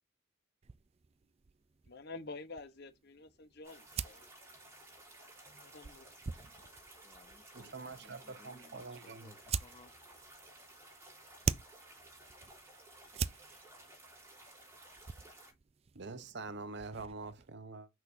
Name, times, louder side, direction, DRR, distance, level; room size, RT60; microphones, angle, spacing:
sound 1, 0.6-17.5, right 6 dB, 30° right, 0.4 m, -45 dB
voice 1, 1.9-4.3 5.6-6.1, left 3 dB, 50° left, 1.0 m, -48 dB
sound 2, 3.6-15.5, right 1 dB, 10° right, 3.4 m, -56 dB
voice 2, 6.4-9.9, left 2 dB, 25° left, 0.7 m, -62 dB
voice 3, 7.5-9.3 15.9-17.9, right 3 dB, 55° right, 0.9 m, -45 dB
6.3 x 6.0 x 2.7 m
head